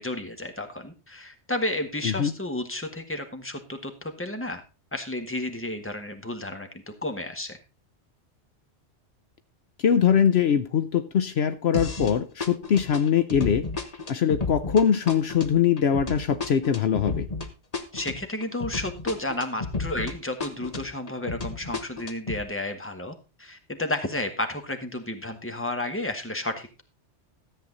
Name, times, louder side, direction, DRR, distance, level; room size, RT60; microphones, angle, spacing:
voice 1, 0.0-4.6 4.9-6.7 7.0-7.6 17.9-26.8, left 1 dB, 10° left, 6 dB, 1.5 m, -32 dB
voice 2, 9.8-13.6 14.1-17.3, left 8 dB, 65° left, 11 dB, 0.9 m, -22 dB
sound 1, 11.7-12.1 12.4-20.1 20.4-22.4, left 3 dB, 35° left, 1.3 m, -32 dB
13.5 x 8.1 x 3.9 m, 0.30 s
omnidirectional pair, 1.2 m